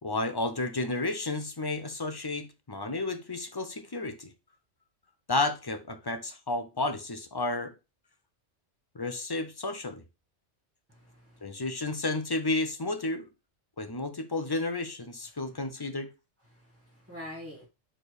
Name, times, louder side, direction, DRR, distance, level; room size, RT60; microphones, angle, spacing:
voice 1, 0.0-4.3 5.3-7.7 8.9-10.0 11.4-13.3 13.8-16.1, left 2 dB, 30° left, 0.4 m, -32 dB
voice 2, 10.9-11.4 15.5-15.6 16.5-17.7, left 1 dB, 10° right, 1.8 m, -45 dB
4.5 x 4.4 x 4.9 m
omnidirectional pair, 1.3 m